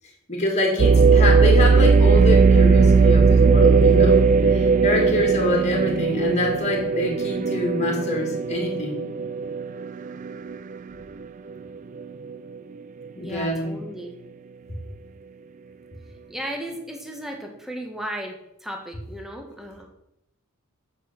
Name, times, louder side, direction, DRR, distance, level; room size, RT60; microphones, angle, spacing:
voice 1, 0.3-9.0 13.1-13.8, left 1 dB, 30° left, 1 dB, 2.4 m, -26 dB
sound 1, 0.8-10.7 11.2-11.3 12.0-12.4, right 4 dB, 35° right, 0.3 m, -18 dB
voice 2, 13.2-14.2 16.3-19.9, equal, ahead, 1 dB, 1.5 m, -35 dB
8.2 x 6.1 x 5.9 m, 0.80 s
head